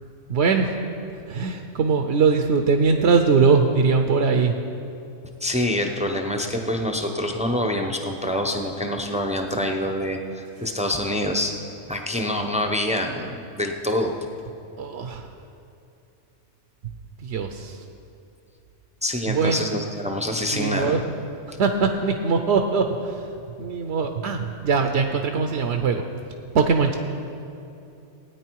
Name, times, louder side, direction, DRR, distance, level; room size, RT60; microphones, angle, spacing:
voice 1, 0.3-0.7 1.3-4.6 14.8-15.3 17.2-17.8 19.3-19.6 20.5-21.0 21.6-23.3 23.6-26.0 26.5-26.9, right 5 dB, 65° right, 5 dB, 0.9 m, -21 dB
voice 2, 5.4-11.5 11.9-14.1 19.0-21.0, left 1 dB, 5° right, 3 dB, 0.6 m, -26 dB
17.5 x 9.2 x 4.6 m, 2.8 s
omnidirectional pair, 1.3 m